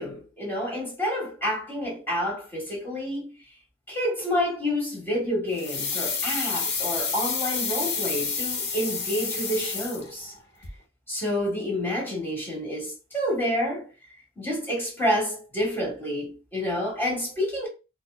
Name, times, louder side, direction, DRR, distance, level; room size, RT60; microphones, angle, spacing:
voice 1, 0.0-3.4 3.9-10.3 11.1-13.9 14.4-17.7, equal, 10° left, 1.7 m, -29 dB
sound 1, 5.6-10.4 10.6-10.7, left 5 dB, 55° left, 0.9 m, -29 dB
4.2 x 2.4 x 2.3 m
head